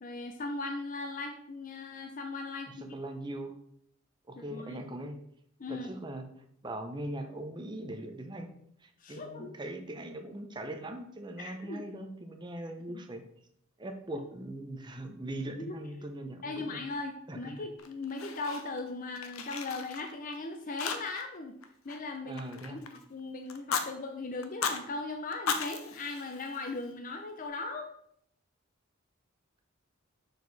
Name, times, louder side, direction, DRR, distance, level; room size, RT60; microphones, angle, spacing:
voice 1, 0.0-2.7 4.4-4.8 5.6-5.9 9.0-9.6 11.4-11.8 12.9-13.0 14.1-14.3 15.6-15.7 16.4-21.6 21.8-27.9, left 3 dB, 40° left, 4 dB, 0.6 m, -38 dB
voice 2, 2.8-3.5 4.3-5.2 5.7-6.3 6.6-8.5 8.8-13.2 13.8-16.8 17.3-17.7 22.2-22.8, right 1 dB, 20° right, 5 dB, 0.7 m, -40 dB
Fire, 17.8-18.9 19.2-20.4 20.8-21.4 21.6-23.0 23.5-23.9 24.4-24.8 25.3-26.9, left 6 dB, 85° left, 0.7 m, -36 dB
6.5 x 4.8 x 4.0 m, 0.69 s
head